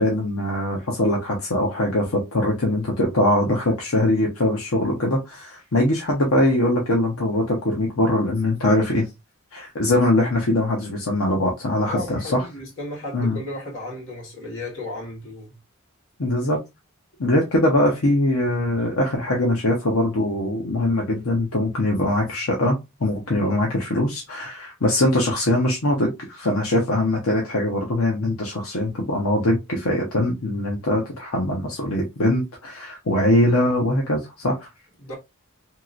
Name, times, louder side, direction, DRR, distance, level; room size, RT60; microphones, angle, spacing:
voice 1, 0.0-9.1 9.5-12.4 13.1-13.4 16.2-16.6 17.2-34.7, left 1 dB, 90° left, 0.8 m, -22 dB
voice 2, 11.9-15.5 35.0-35.1, left 1 dB, 60° left, 1.7 m, -34 dB
2.9 x 2.9 x 2.5 m
head